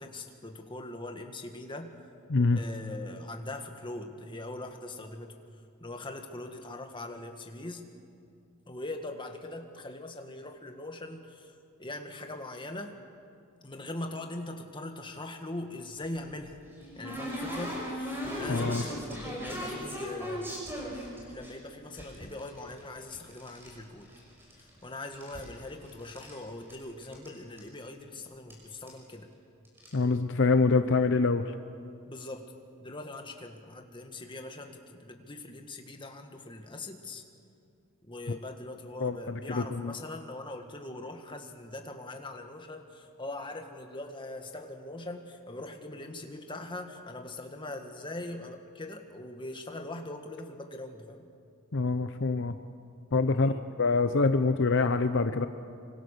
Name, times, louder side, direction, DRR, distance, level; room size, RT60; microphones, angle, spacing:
voice 1, 0.0-1.9 2.5-5.3 5.8-7.8 8.7-11.5 11.8-12.9 13.6-16.6 17.0-20.5 21.3-24.1 24.8-29.3 32.1-32.5 32.8-37.2 38.0-51.3 53.3-53.6, left 2 dB, 20° left, 4 dB, 1.8 m, -41 dB
sound 1, 16.0-21.5 21.9-23.7 24.0-24.8 25.0-26.4 26.7-26.8 27.0-27.3 27.6-27.7 28.5-28.6 28.9-29.1 29.6-29.9, equal, 10° right, 6.0 m, -38 dB
voice 2, 18.5-18.8 29.9-31.5 39.0-39.9 51.7-52.5 53.1-53.5 53.8-55.5, left 3 dB, 60° left, 9 dB, 0.7 m, -25 dB
25.5 x 25.0 x 6.7 m, 2.4 s
head